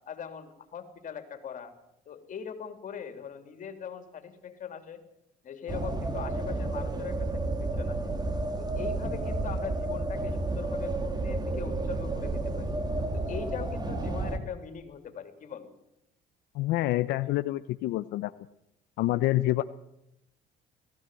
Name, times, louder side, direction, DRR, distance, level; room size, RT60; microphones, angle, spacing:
voice 1, 0.1-1.7 2.1-5.0 5.4-8.1 8.6-12.7 13.1-15.7, left 7 dB, 50° left, 7 dB, 3.1 m, -41 dB
sound 1, 5.7-14.4, right 2 dB, 25° right, 2.2 m, -31 dB
voice 2, 16.5-18.3 19.0-19.6, left 16 dB, 80° left, 11 dB, 0.7 m, -27 dB
19.0 x 15.5 x 9.0 m, 0.84 s
cardioid pair, 110°, 17 cm